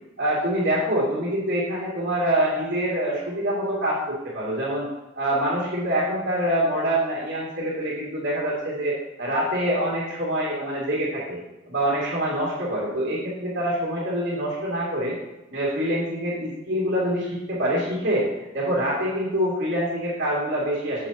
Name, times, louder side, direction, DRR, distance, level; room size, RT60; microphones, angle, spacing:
voice 1, 0.2-4.9 5.2-11.4 11.7-15.2 15.5-21.1, right 1 dB, 60° right, -10 dB, 2.6 m, -25 dB
9.7 x 7.3 x 3.0 m, 1.0 s
head